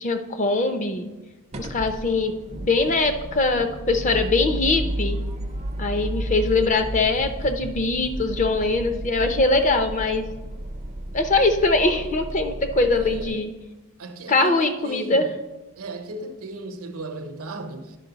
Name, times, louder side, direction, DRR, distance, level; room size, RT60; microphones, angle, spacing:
voice 1, 0.0-1.1 1.6-2.3 2.6-5.2 5.8-10.3 11.1-13.5 14.3-15.3, left 3 dB, 35° left, 0.6 m, -22 dB
sound 1, 1.5-13.3, right 1 dB, 30° right, 0.5 m, -32 dB
voice 2, 12.9-13.4 14.0-15.3 15.8-18.0, right 2 dB, 70° right, 0.8 m, -35 dB
11.0 x 5.3 x 4.0 m
head